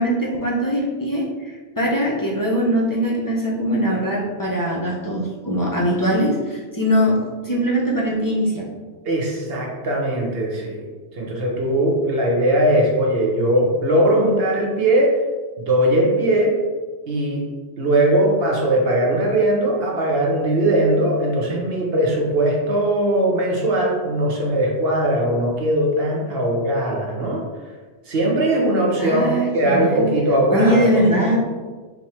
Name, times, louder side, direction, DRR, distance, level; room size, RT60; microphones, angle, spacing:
voice 1, 0.0-7.2 7.4-8.7 29.0-30.0 30.5-31.4, equal, 25° left, -3 dB, 0.6 m, -21 dB
voice 2, 9.0-10.8 11.1-15.2 15.6-16.5 17.1-17.4 17.8-27.4 28.1-31.4, right 1 dB, 60° right, -2 dB, 1.1 m, -20 dB
3.6 x 2.9 x 4.2 m, 1.3 s
omnidirectional pair, 1.1 m